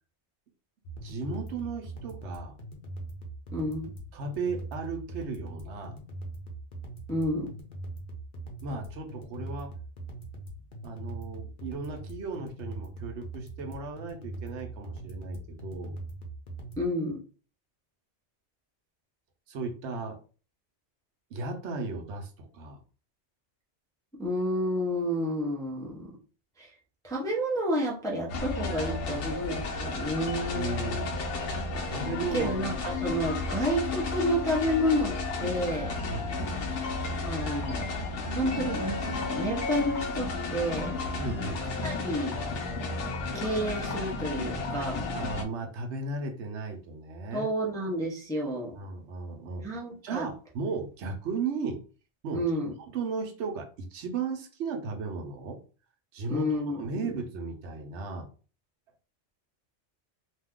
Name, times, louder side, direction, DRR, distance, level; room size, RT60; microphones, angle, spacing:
sound 1, 0.8-16.8, right 2 dB, 50° left, 0.8 m, -41 dB
voice 1, 1.0-2.6 4.1-6.0 8.6-9.7 10.8-15.9 19.5-20.2 21.3-22.8 30.5-31.2 31.9-32.6 33.5-33.6 36.1-36.6 41.2-41.7 45.1-47.5 48.7-49.7 50.0-51.8 52.2-52.4 52.9-55.6 56.1-58.3, right 4 dB, 75° right, 3 dB, 0.9 m, -35 dB
voice 2, 3.5-3.9 7.1-7.5 16.8-17.2 24.2-26.1 26.6-26.7 27.0-31.1 32.3-35.9 37.2-37.9 38.3-41.0 41.8-42.4 43.3-45.1 47.3-48.7 49.6-50.3 52.3-52.7 56.3-57.1, equal, 5° left, -4 dB, 0.5 m, -30 dB
sound 2, 28.3-45.4, left 3 dB, 90° left, 1.0 m, -32 dB
2.7 x 2.3 x 3.5 m, 0.37 s
omnidirectional pair, 1.2 m